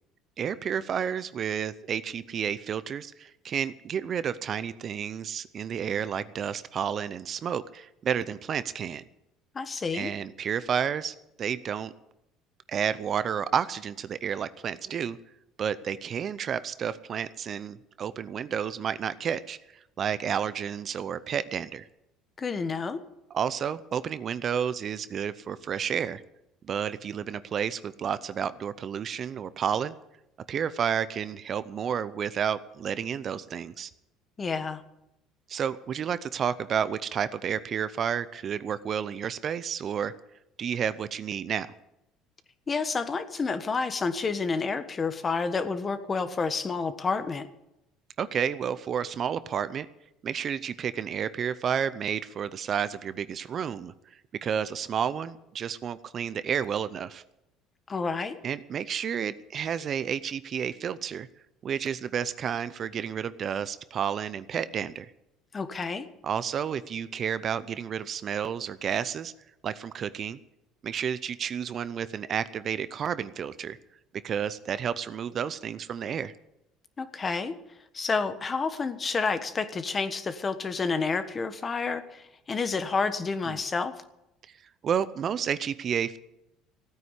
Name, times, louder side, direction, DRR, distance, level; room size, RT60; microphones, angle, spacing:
voice 1, 0.4-9.0 9.9-11.9 12.7-15.2 15.6-19.6 20.0-21.9 23.3-26.2 26.7-29.9 30.5-33.9 35.5-40.1 40.6-41.7 48.2-49.9 50.2-53.9 54.4-57.2 58.4-61.3 61.6-65.1 66.2-69.3 69.6-70.4 70.8-73.8 74.2-76.3 83.5-83.6 84.8-86.2, right 8 dB, 40° right, 15 dB, 0.6 m, -31 dB
voice 2, 9.5-10.1 22.4-23.0 34.4-34.8 42.7-47.5 57.9-58.4 65.5-66.1 77.0-77.5 77.9-83.9, left 4 dB, 25° left, 11 dB, 1.3 m, -29 dB
16.0 x 9.5 x 8.2 m, 0.87 s
cardioid pair, 115°, 0 cm